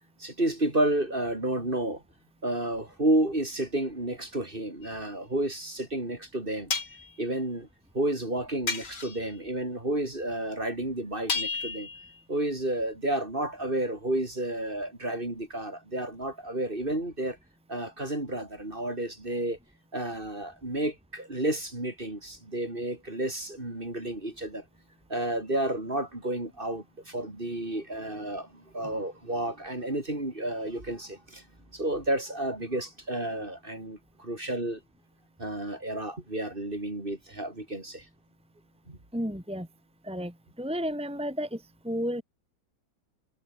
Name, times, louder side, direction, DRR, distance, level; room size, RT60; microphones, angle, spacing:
voice 1, 0.2-2.0 2.4-6.7 7.2-7.7 7.9-11.9 12.3-17.4 17.7-19.6 19.9-24.6 25.1-31.4 31.7-34.8 35.4-38.1 38.9-39.0, right 1 dB, 25° right, 4.2 m, -31 dB
sound 1, 4.8-5.0 6.7-7.1 8.7-9.3 11.3-12.2, left 5 dB, 55° left, 3.5 m, -32 dB
voice 2, 39.1-39.7 40.0-42.2, equal, 5° right, 2.9 m, -32 dB
omnidirectional pair, 2.2 m